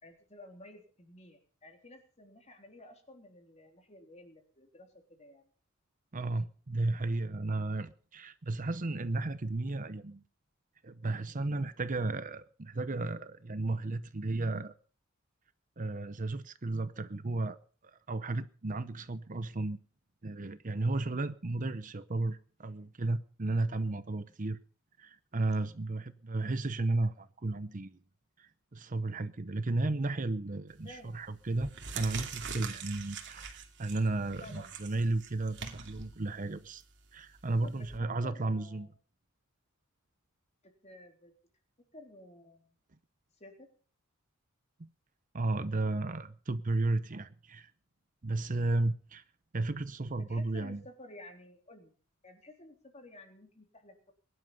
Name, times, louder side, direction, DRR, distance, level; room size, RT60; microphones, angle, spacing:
voice 1, 0.0-5.5 30.8-31.2 34.4-34.7 37.6-38.9 40.6-41.3 41.9-42.8 43.4-43.7 50.2-51.9 52.2-54.1, left 1 dB, 30° left, 3.6 m, -53 dB
voice 2, 6.1-10.2 10.8-14.8 15.8-17.6 18.1-19.8 20.2-24.6 25.0-28.0 28.4-36.8 37.1-38.9 44.8-44.9 45.3-47.7 48.2-49.2 49.5-50.8, right 2 dB, 40° right, 0.8 m, -33 dB
sound 1, 30.7-31.0 31.5-38.0, right 6 dB, 55° right, 2.6 m, -44 dB
21.5 x 11.5 x 5.5 m
head